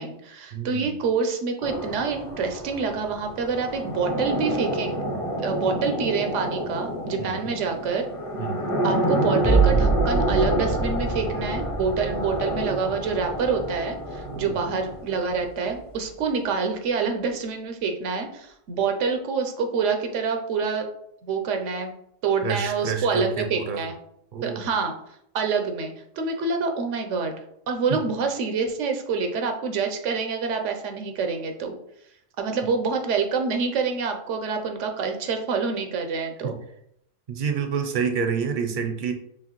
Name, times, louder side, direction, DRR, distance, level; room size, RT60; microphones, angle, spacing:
voice 1, 0.0-5.0 5.4-8.0 8.8-20.9 21.2-21.9 22.2-23.9 24.4-24.9 25.3-27.3 27.7-31.8 32.4-36.6, right 5 dB, 85° right, 5 dB, 1.0 m, -27 dB
voice 2, 0.5-1.0 7.2-7.5 8.4-8.6 14.3-14.7 22.4-23.9 24.3-24.6 27.9-28.0 36.4-36.6 37.3-39.1, right 6 dB, 55° right, 5 dB, 0.6 m, -28 dB
sound 1, 1.6-15.4, equal, 35° left, 0.7 m, -29 dB
sound 2, 9.4-14.9 15.3-15.9, right 4 dB, 80° left, 1.6 m, -26 dB
4.7 x 3.1 x 3.0 m, 0.74 s
omnidirectional pair, 1.2 m